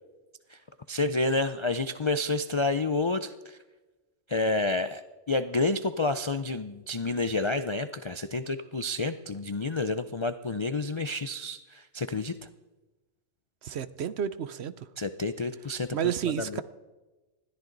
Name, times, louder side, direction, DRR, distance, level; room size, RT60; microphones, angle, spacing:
voice 1, 0.9-3.6 4.3-5.0 5.3-12.3 15.0-16.6, left 2 dB, 45° left, 10 dB, 0.3 m, -29 dB
voice 2, 13.6-14.7 15.9-16.6, right 9 dB, 60° right, 14 dB, 0.8 m, -31 dB
20.5 x 14.0 x 3.9 m, 1.2 s
omnidirectional pair, 1.3 m